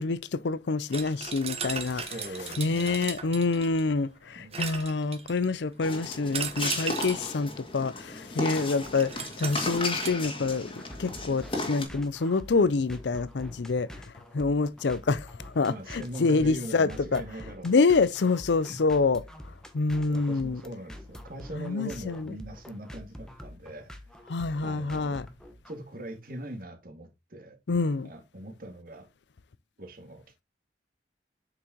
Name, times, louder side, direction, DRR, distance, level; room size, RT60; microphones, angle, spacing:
voice 1, 0.0-2.1 2.6-14.0 14.3-17.2 17.6-19.2 19.7-20.6 21.5-22.3 24.3-25.3 27.7-28.1, left 4 dB, 80° left, 0.5 m, -27 dB
sound 1, 0.9-3.9 4.5-5.5 6.3-7.3 8.8-10.1, right 6 dB, 35° right, 1.1 m, -36 dB
voice 2, 1.9-3.1 4.4-4.6 15.7-17.7 18.7-18.8 20.1-23.9 24.6-25.2 25.7-27.6 28.0-29.1 29.8-30.4, right 1 dB, 55° right, 2.1 m, -41 dB
sound 2, 5.8-11.9, left 2 dB, 30° left, 2.1 m, -35 dB
sound 3, 10.8-25.8, equal, 5° left, 1.1 m, -46 dB
8.0 x 6.3 x 2.9 m
head